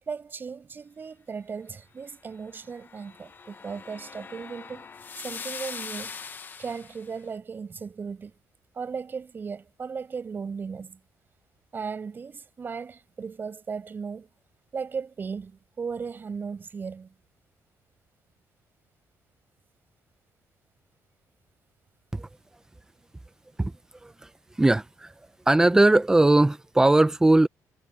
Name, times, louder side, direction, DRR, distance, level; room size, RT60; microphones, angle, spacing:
voice 1, 0.1-4.9 5.2-6.2 6.6-8.4 8.7-11.0 11.7-14.3 14.7-17.1, right 5 dB, 30° right, 7.7 m, -36 dB
sound 1, 2.5-7.1, left 5 dB, 30° left, 1.4 m, -41 dB
voice 2, 24.6-25.1 25.5-27.5, right 2 dB, 10° right, 0.7 m, -19 dB
cardioid pair, 155°, 7 cm